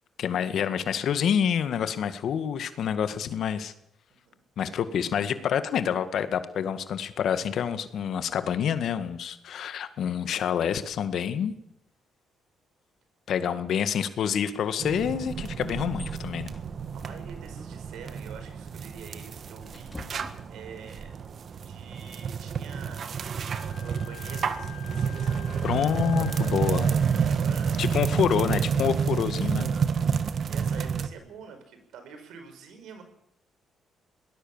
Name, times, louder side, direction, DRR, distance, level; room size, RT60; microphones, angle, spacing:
voice 1, 0.2-3.7 4.6-11.5 13.3-16.5 25.6-26.9 27.8-29.7, left 8 dB, 70° left, 11 dB, 1.8 m, -27 dB
sound 1, 14.8-31.1, right 6 dB, 55° right, 1.5 m, -29 dB
sound 2, 15.3-21.0, left 3 dB, 20° left, 5.2 m, -50 dB
voice 2, 16.9-20.2 20.5-21.1 21.7-26.0 27.2-27.8 28.1-28.2 29.0-29.9 30.5-33.0, right 6 dB, 80° right, 8 dB, 5.1 m, -46 dB
Wind instrument woodwind instrument, 23.5-27.4, left 15 dB, 85° left, 3.9 m, -47 dB
22.5 x 19.0 x 7.3 m, 0.78 s
cardioid pair, 90°, 0 cm